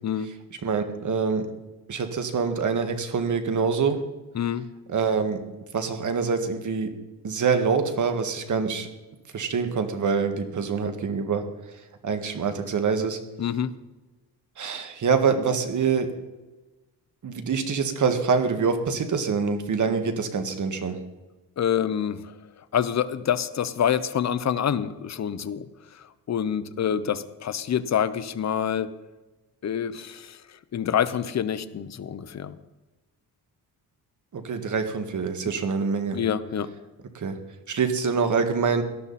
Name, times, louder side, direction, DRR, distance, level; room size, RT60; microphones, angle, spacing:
voice 1, 0.6-1.5 1.9-4.0 4.9-5.4 5.7-6.9 7.2-8.9 9.3-11.5 12.0-13.2 14.6-16.1 17.2-21.0 34.3-36.2 37.1-37.4 37.7-38.8, right 5 dB, 50° right, 7 dB, 1.9 m, -25 dB
voice 2, 4.3-4.7 13.4-13.7 21.6-28.9 29.6-32.6 36.1-36.7, left 8 dB, 40° left, 13 dB, 0.9 m, -27 dB
18.0 x 12.5 x 4.3 m, 1.1 s
cardioid pair, 115°, 40 cm